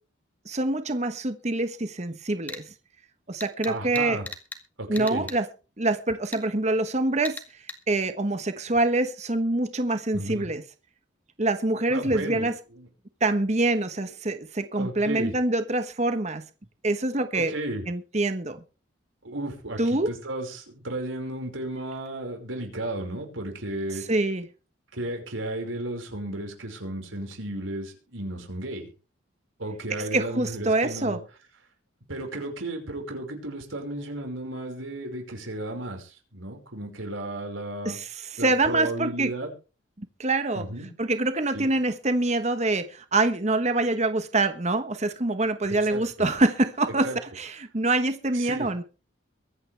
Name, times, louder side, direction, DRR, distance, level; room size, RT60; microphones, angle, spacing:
voice 1, 0.4-2.6 3.3-4.2 4.9-5.5 5.8-7.4 7.9-10.6 11.4-12.5 13.2-16.4 16.8-17.5 17.9-18.6 19.8-20.1 24.1-24.4 30.0-31.2 37.8-39.3 40.0-40.6 41.0-47.1 47.3-48.8, right 2 dB, 35° right, 9 dB, 1.2 m, -25 dB
sound 1, 2.5-2.6 3.4-4.6 4.9-5.4 6.3-6.4 7.2-7.8, left 2 dB, 10° left, 2.0 m, -38 dB
voice 2, 3.7-4.3 4.8-5.3 10.1-10.5 11.9-12.9 14.8-15.3 17.3-17.8 19.2-24.0 24.9-28.9 29.6-31.2 32.1-38.0 38.4-39.5 40.6-40.9 41.5-41.7 45.7-46.3 47.0-47.2 48.3-48.7, right 1 dB, 80° right, 3 dB, 5.2 m, -34 dB
23.0 x 9.7 x 3.4 m, 0.34 s
head